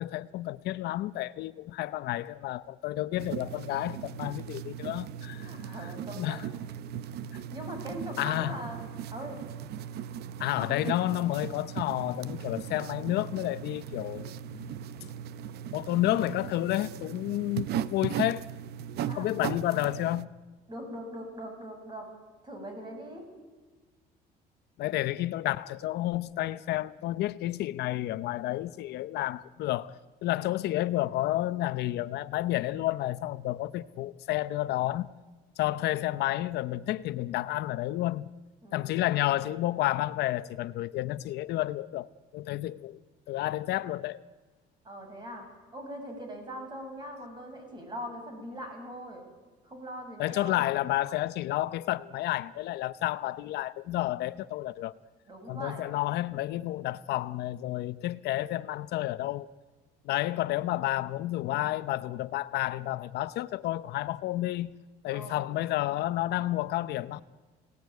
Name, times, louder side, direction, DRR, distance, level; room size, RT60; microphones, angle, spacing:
voice 1, 0.0-5.5 6.2-6.4 8.2-8.6 10.4-14.7 15.7-18.5 19.2-20.3 24.8-30.0 30.2-35.1 35.6-38.3 38.7-42.1 42.3-43.0 43.3-44.2 50.2-54.9 55.5-59.5 60.0-64.7 65.0-67.2, left 15 dB, 75° left, 0.7 m, -30 dB
sound 1, 3.2-20.2, right 9 dB, 75° right, 0.8 m, -38 dB
voice 2, 5.4-6.4 7.5-8.8 9.1-9.4 10.6-11.0 19.0-19.3 20.7-22.1 22.4-23.3 30.4-30.6 38.6-39.0 44.8-49.3 49.6-50.7 55.3-55.9 65.1-65.5, equal, 25° right, 7.3 m, -41 dB
26.5 x 18.0 x 9.4 m
cardioid pair, 110°, 17 cm